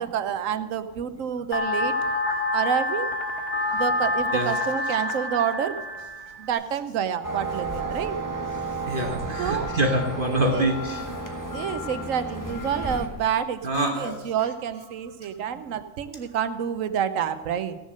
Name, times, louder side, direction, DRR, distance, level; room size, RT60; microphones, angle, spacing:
voice 1, 0.0-2.0 2.5-3.1 3.7-5.8 6.4-8.2 9.4-9.7 10.0-10.1 10.5-10.7 11.3-17.8, right 8 dB, 80° right, 11 dB, 1.1 m, -28 dB
sound 1, 1.5-6.5, left 2 dB, 50° left, 1.2 m, -27 dB
sound 2, 7.2-13.1, right 2 dB, 15° left, 1.3 m, -32 dB
voice 2, 8.9-11.0 13.6-14.2, right 1 dB, 45° right, 2 dB, 1.3 m, -25 dB
15.5 x 7.3 x 6.3 m, 1.1 s
omnidirectional pair, 1.3 m